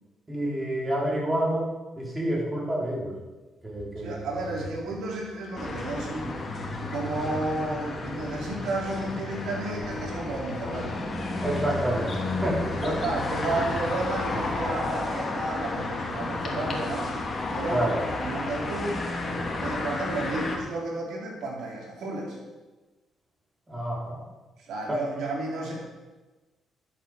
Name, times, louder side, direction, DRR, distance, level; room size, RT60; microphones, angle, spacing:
voice 1, 0.3-3.2 3.6-4.2 11.4-13.0 17.7-18.0 23.7-24.2 24.9-25.0, right 1 dB, 15° right, -3 dB, 4.7 m, -28 dB
sound 1, 3.7-10.7, equal, 5° left, 2.6 m, -42 dB
voice 2, 4.0-6.4 6.9-11.0 12.6-17.1 17.5-19.0 19.6-22.4 24.6-25.7, right 2 dB, 75° right, -1 dB, 4.1 m, -32 dB
sound 2, 5.6-20.6, left 2 dB, 35° left, 2.8 m, -32 dB
12.0 x 8.7 x 6.7 m, 1.2 s
cardioid pair, 90°, 0 cm